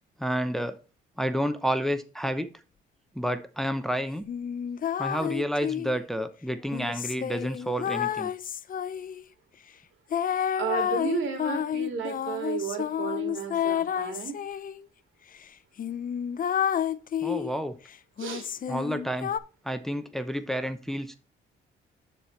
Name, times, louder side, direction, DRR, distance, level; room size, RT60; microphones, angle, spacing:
voice 1, 0.2-0.8 1.2-2.5 3.1-4.3 5.0-8.3 17.2-17.8 18.7-19.3 19.6-21.2, equal, ahead, 9 dB, 0.8 m, -30 dB
sound 1, 4.3-6.0 6.7-9.3 10.1-14.8 15.3-15.4 15.8-17.6 18.2-19.4, left 9 dB, 45° left, 0.6 m, -30 dB
voice 2, 10.6-14.4 18.2-18.5, right 7 dB, 75° right, 4 dB, 2.5 m, -33 dB
11.5 x 4.4 x 3.2 m, 0.33 s
cardioid pair, 90°, 20 cm